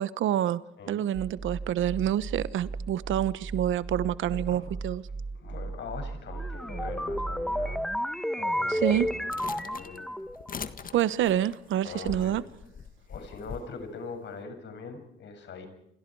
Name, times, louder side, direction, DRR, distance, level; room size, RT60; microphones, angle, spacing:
voice 1, 0.0-0.6 0.9-5.0 8.7-9.1 10.9-12.4, right 11 dB, 75° right, 1.1 m, -27 dB
sound 1, 1.1-8.0, right 3 dB, 20° right, 1.1 m, -38 dB
voice 2, 5.3-7.8 8.3-9.2 9.6-10.1 11.8-12.4 13.1-15.7, left 5 dB, 65° left, 7.3 m, -41 dB
sound 2, 6.3-10.5, equal, ahead, 1.4 m, -31 dB
sound 3, 9.3-13.7, left 6 dB, 45° left, 1.7 m, -42 dB
29.5 x 27.0 x 4.8 m
cardioid pair, 90°, 20 cm